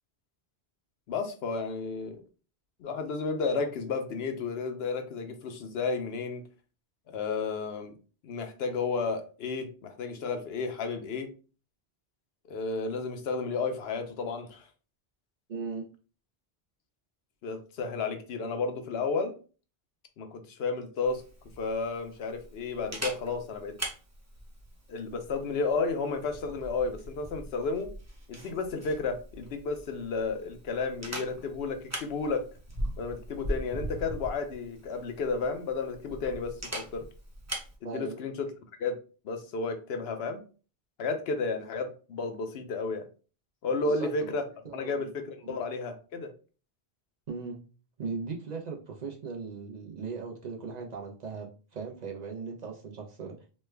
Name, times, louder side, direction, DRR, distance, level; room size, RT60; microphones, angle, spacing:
voice 1, 1.1-2.2 2.8-6.4 7.1-7.9 8.2-11.3 12.5-14.6 17.4-19.3 20.2-21.2 21.6-23.7 24.9-27.9 28.3-32.4 33.0-37.0 37.8-38.5 38.8-38.9 39.2-40.4 41.0-43.1 43.6-44.4 44.7-46.3, left 4 dB, 75° left, 6 dB, 0.9 m, -32 dB
voice 2, 15.5-15.9 37.8-38.2 43.8-44.3 44.6-45.1 45.4-45.6 47.3-47.6 48.0-53.5, right 5 dB, 50° right, 0 dB, 0.6 m, -38 dB
Camera, 21.0-37.7, right 1 dB, 15° right, 0.8 m, -41 dB
3.2 x 2.2 x 3.2 m, 0.36 s
omnidirectional pair, 1.0 m